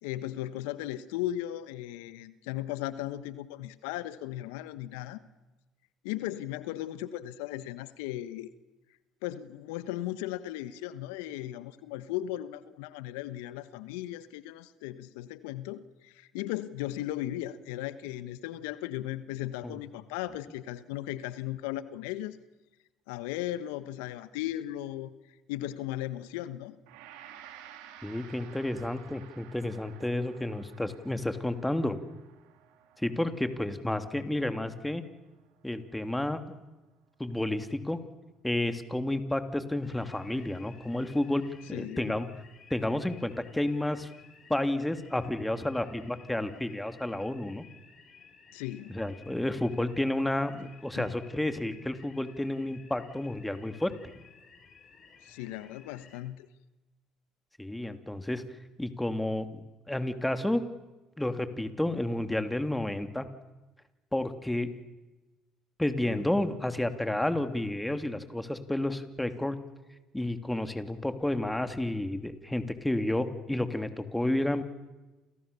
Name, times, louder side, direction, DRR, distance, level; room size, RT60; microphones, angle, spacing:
voice 1, 0.0-5.2 6.0-8.5 9.2-22.4 23.1-25.1 25.5-26.7 41.7-42.2 48.5-49.0 51.0-51.1 55.2-56.5, left 14 dB, 80° left, 14 dB, 1.3 m, -36 dB
Gong, 26.9-36.1, right 10 dB, 75° right, 3.7 m, -54 dB
voice 2, 28.0-32.0 33.0-35.0 35.6-36.6 37.2-38.0 38.4-41.4 41.7-42.3 42.7-44.1 44.5-47.6 48.9-53.9 57.6-58.4 58.8-59.6 59.9-60.6 61.2-63.3 64.1-64.7 65.8-69.6 70.1-74.6, left 1 dB, 5° left, 9 dB, 3.0 m, -31 dB
sound 1, 39.8-56.2, left 6 dB, 45° left, 7.0 m, -56 dB
29.0 x 28.5 x 7.1 m, 1.1 s
hypercardioid pair, 65°, 0 cm